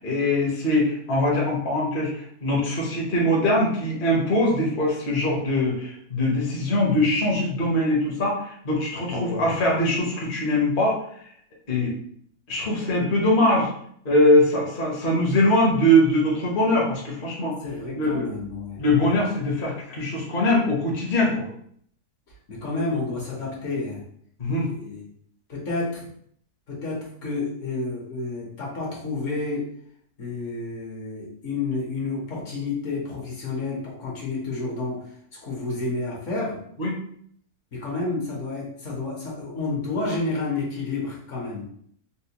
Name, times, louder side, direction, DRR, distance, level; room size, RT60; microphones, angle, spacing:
voice 1, 0.0-11.0 11.7-11.9 12.5-13.7 14.0-17.6 17.9-18.4 18.8-21.5 24.4-24.7 36.8-36.9, left 1 dB, 40° left, -3 dB, 0.9 m, -22 dB
voice 2, 9.1-9.5 17.6-18.8 22.5-24.0 24.7-25.0 25.5-26.1 26.7-29.7 30.2-35.0 35.4-36.6 37.7-41.6, left 3 dB, 55° left, -4 dB, 1.2 m, -30 dB
4.3 x 2.1 x 2.8 m, 0.65 s
omnidirectional pair, 1.6 m